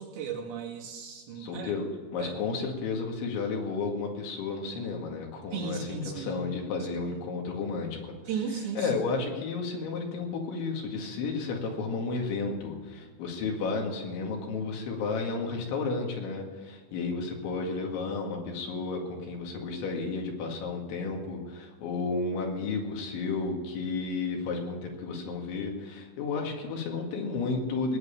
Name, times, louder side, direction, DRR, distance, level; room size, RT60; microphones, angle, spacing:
voice 1, 0.0-1.7 2.2-2.4 5.5-6.4 7.0-7.2 8.3-8.9, right 6 dB, 65° right, -2 dB, 4.3 m, -36 dB
voice 2, 1.4-1.8 2.1-8.2 8.8-28.0, left 4 dB, 70° left, 1 dB, 4.3 m, -32 dB
19.0 x 9.5 x 7.0 m, 1.5 s
omnidirectional pair, 5.6 m